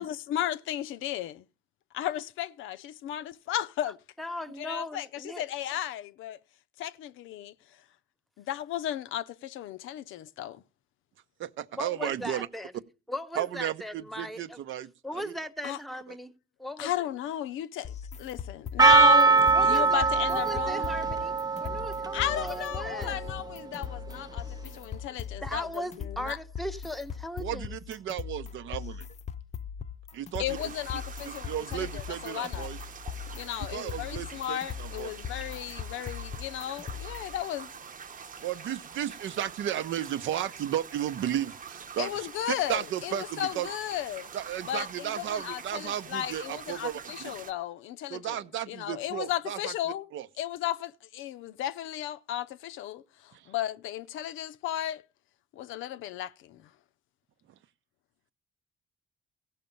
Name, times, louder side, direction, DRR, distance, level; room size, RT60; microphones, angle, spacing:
voice 1, 0.0-1.4 1.9-4.0 4.6-6.4 6.8-7.5 8.4-10.6 15.6-15.8 16.8-20.9 22.1-26.4 30.4-32.7 33.3-37.7 42.0-44.3 44.7-48.4 48.7-50.1 50.4-55.0 55.5-56.7, left 12 dB, 85° left, 0.5 m, -34 dB
voice 2, 4.2-5.4 11.7-12.7 13.1-14.6 15.0-16.3 16.6-17.1 19.5-23.2 25.4-27.7, equal, ahead, 0.9 m, -38 dB
voice 3, 11.4-12.5 13.4-15.3 27.4-29.0 30.1-30.6 31.2-32.8 33.7-35.2 38.4-43.7 44.3-47.3 48.1-49.7 50.1-50.3 53.3-53.5, right 11 dB, 75° right, 0.7 m, -34 dB
sound 1, 17.8-37.4, left 7 dB, 35° left, 0.6 m, -40 dB
Percussion, 18.8-23.8, right 4 dB, 20° right, 0.5 m, -23 dB
sound 2, 30.5-47.5, right 6 dB, 45° right, 0.9 m, -45 dB
16.0 x 5.8 x 5.3 m
cardioid pair, 90°, 20 cm